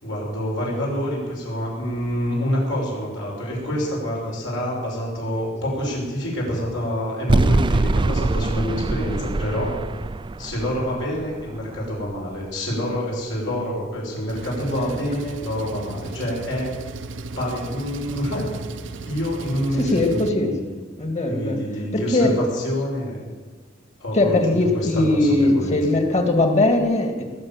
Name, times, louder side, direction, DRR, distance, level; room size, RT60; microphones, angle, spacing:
voice 1, 0.0-9.7 10.4-16.7 17.4-18.5 19.0-20.6 21.3-23.2 24.0-25.7, equal, 75° left, -3 dB, 5.8 m, -27 dB
sound 1, 7.3-12.5, right 2 dB, 25° right, 0.4 m, -24 dB
Engine, 14.3-20.3, right 3 dB, 75° right, 0.7 m, -36 dB
voice 2, 14.6-15.1 19.7-20.5 21.0-22.4 24.1-27.2, left 2 dB, 35° left, 5 dB, 2.2 m, -20 dB
20.5 x 6.8 x 9.0 m, 1.4 s
head